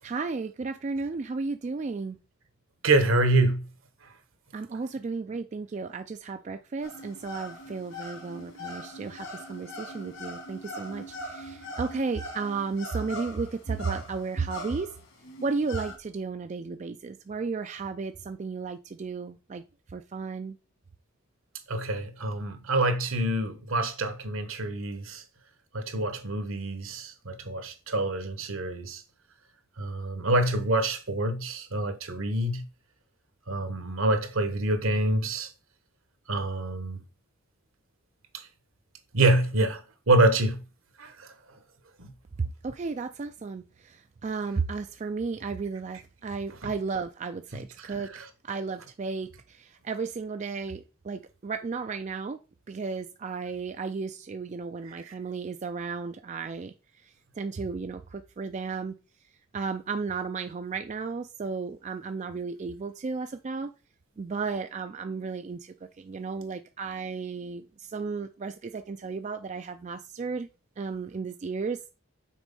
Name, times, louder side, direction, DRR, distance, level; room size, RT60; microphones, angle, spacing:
voice 1, 0.0-2.2 4.5-14.9 15.4-19.6 19.9-20.6 42.4-52.4 52.7-59.0 59.5-63.7 64.2-70.5 70.8-71.8, right 4 dB, 35° right, 0.3 m, -34 dB
voice 2, 2.8-3.7 21.7-25.2 25.7-29.0 29.8-32.6 33.5-35.5 36.3-37.0 38.3-38.5 39.1-39.8 40.1-40.6 41.0-41.3 42.0-42.1 46.6-46.7 47.5-48.2 55.0-55.1, right 2 dB, 70° right, 1.2 m, -26 dB
sound 1, 6.8-16.0, left 1 dB, 70° left, 2.1 m, -41 dB
6.1 x 4.2 x 5.3 m
head